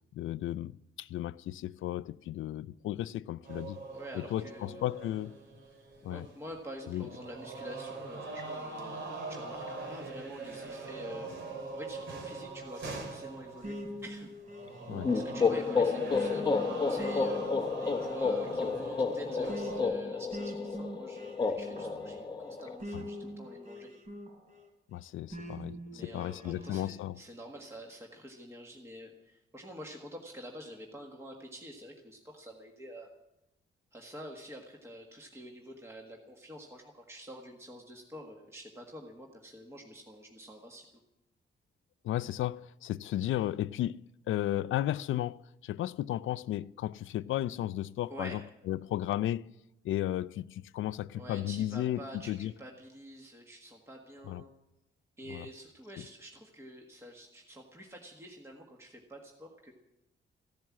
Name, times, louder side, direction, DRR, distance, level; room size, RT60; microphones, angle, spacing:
voice 1, 0.1-3.8 4.1-5.3 6.0-6.3 6.9-7.1 14.9-15.1 22.9-23.0 24.9-27.2 42.0-48.4 48.7-49.5 49.8-52.5 54.3-54.4 55.3-55.5 56.0-56.1, left 13 dB, 85° left, 0.5 m, -34 dB
sound 1, 3.4-6.5 6.8-19.8, right 3 dB, 70° right, 3.4 m, -42 dB
voice 2, 3.9-4.9 6.0-14.3 15.1-23.9 25.9-33.1 33.9-40.9 48.1-48.4 51.1-54.5 55.2-59.7, equal, 15° right, 1.6 m, -47 dB
sound 2, 13.6-24.7 25.3-26.8, equal, 40° right, 3.2 m, -43 dB
sound 3, 15.0-22.8, left 4 dB, 25° left, 0.8 m, -31 dB
15.5 x 12.5 x 7.3 m
wide cardioid pair, 155°, 20 cm